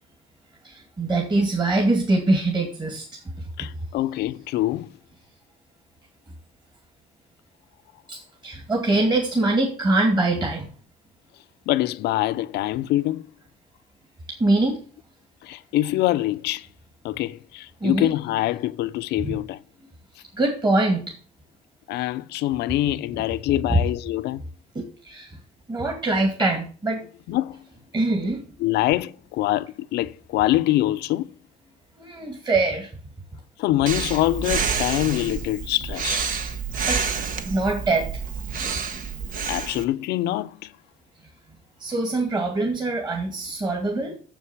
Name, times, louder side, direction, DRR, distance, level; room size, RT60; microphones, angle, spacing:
voice 1, 0.6-3.2 8.1-10.7 14.4-14.8 17.8-18.1 19.2-19.3 20.3-21.1 23.7-23.8 24.7-25.4 25.7-27.0 27.9-28.4 32.0-32.9 36.9-37.1 37.4-38.1 41.8-44.2, right 2 dB, 25° right, 2.4 m, -23 dB
voice 2, 3.6-4.9 11.7-13.2 15.4-16.7 17.0-19.6 21.9-24.4 27.3-27.7 28.6-31.3 33.6-36.3 39.4-40.7, left 15 dB, 80° left, 0.6 m, -24 dB
Breathing, 33.9-39.8, right 6 dB, 55° right, 1.2 m, -28 dB
7.3 x 6.9 x 7.2 m
cardioid pair, 110°, 17 cm